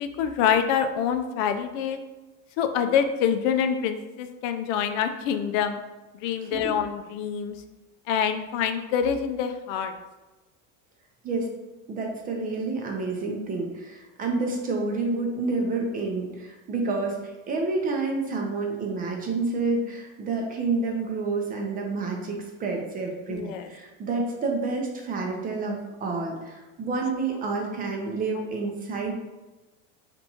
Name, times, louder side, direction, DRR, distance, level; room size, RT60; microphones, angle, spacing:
voice 1, 0.0-2.0 2.6-5.8 6.2-7.6 8.1-9.9 23.3-23.7, left 8 dB, 80° left, 8 dB, 0.5 m, -26 dB
voice 2, 6.4-6.7 11.2-11.5 11.9-29.3, right 3 dB, 25° right, 1 dB, 0.5 m, -29 dB
4.1 x 3.5 x 2.8 m, 1.1 s
cardioid pair, 160°, 37 cm